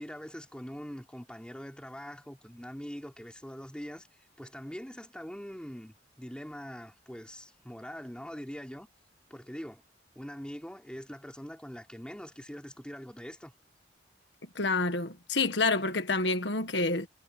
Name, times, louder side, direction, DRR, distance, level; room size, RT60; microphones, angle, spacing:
voice 1, 0.0-8.9 9.3-9.8 10.1-13.5, equal, 5° left, 3.2 m, -43 dB
voice 2, 14.6-17.1, left 3 dB, 70° left, 1.7 m, -28 dB
head